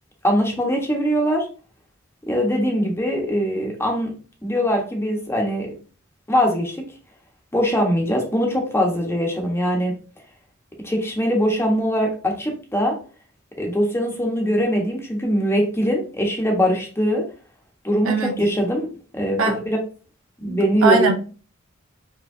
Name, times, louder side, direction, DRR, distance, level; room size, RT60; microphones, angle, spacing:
voice 1, 0.2-1.5 2.3-4.1 4.4-5.7 6.3-6.8 7.5-9.9 10.8-13.0 13.6-17.2 17.8-18.9 19.1-19.8 20.4-21.1, equal, 10° left, 1.1 m, -22 dB
voice 2, 18.0-18.4 19.4-19.6 20.4-21.2, right 4 dB, 80° right, 0.8 m, -21 dB
5.3 x 3.1 x 2.6 m
head